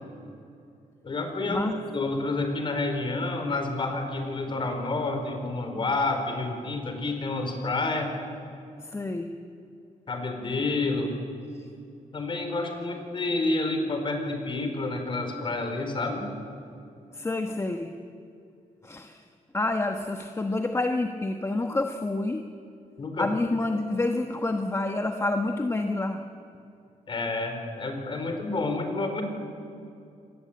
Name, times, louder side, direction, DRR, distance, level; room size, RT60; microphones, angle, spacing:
voice 1, 1.0-8.1 10.1-11.1 12.1-16.3 23.0-23.3 27.1-29.2, left 2 dB, 40° left, 5 dB, 4.4 m, -29 dB
voice 2, 8.8-9.3 11.5-11.7 17.1-17.9 18.8-19.2 19.5-22.4 23.2-26.2, left 2 dB, 20° left, 6 dB, 1.1 m, -28 dB
25.0 x 19.5 x 8.6 m, 2.5 s
cardioid pair, 120°, 13 cm